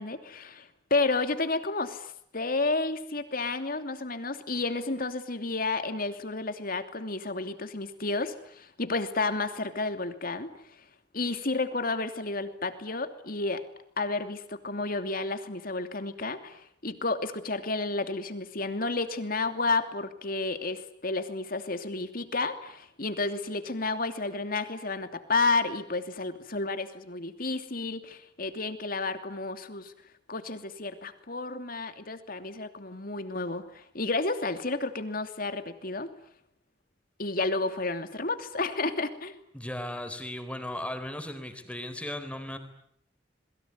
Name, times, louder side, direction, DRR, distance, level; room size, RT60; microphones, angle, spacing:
voice 1, 0.0-10.9 11.1-13.6 14.0-29.9 30.3-36.1 37.2-39.4, left 3 dB, 50° left, 8 dB, 2.9 m, -31 dB
voice 2, 39.5-42.6, left 1 dB, 5° left, 8 dB, 4.0 m, -36 dB
27.5 x 22.5 x 9.6 m, 0.69 s
head